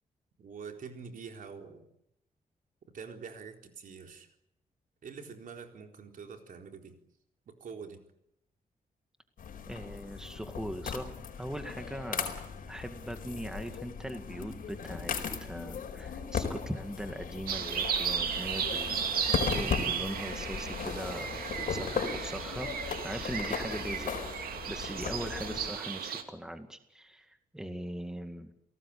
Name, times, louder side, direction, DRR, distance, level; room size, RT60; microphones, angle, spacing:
voice 1, 0.4-1.8 2.9-4.3 5.0-6.9 7.6-8.0, right 5 dB, 65° right, 4 dB, 4.1 m, -45 dB
sound 1, 9.4-25.7, left 6 dB, 70° left, 4.7 m, -37 dB
voice 2, 9.7-11.1 11.4-12.3 12.7-15.1 15.4-21.3 21.7-24.1 24.3-28.5, equal, 5° right, 7 dB, 2.0 m, -40 dB
sound 2, 17.5-26.2, right 7 dB, 85° right, 2.8 m, -35 dB
29.5 x 18.5 x 8.6 m, 0.76 s
wide cardioid pair, 130°, 15 cm